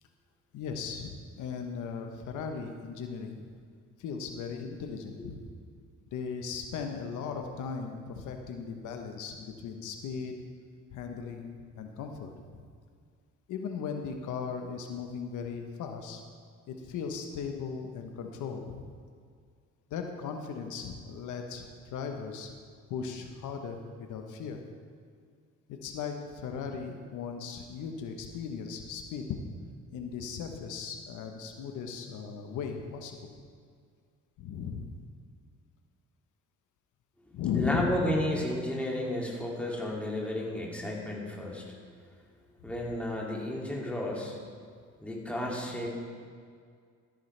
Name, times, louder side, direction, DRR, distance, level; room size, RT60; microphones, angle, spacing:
voice 1, 0.5-3.4 4.0-5.4 6.1-10.3 10.9-12.6 13.5-16.2 16.7-18.8 19.9-22.5 22.9-24.6 25.7-29.4 29.9-33.3 34.4-34.9 37.3-38.2 42.6-42.7, left 6 dB, 85° left, 4 dB, 1.0 m, -37 dB
voice 2, 37.5-41.6 42.6-44.4 45.0-45.9, left 1 dB, 5° left, -3 dB, 2.4 m, -32 dB
13.5 x 10.0 x 3.3 m, 2.1 s
cardioid pair, 90°, 30 cm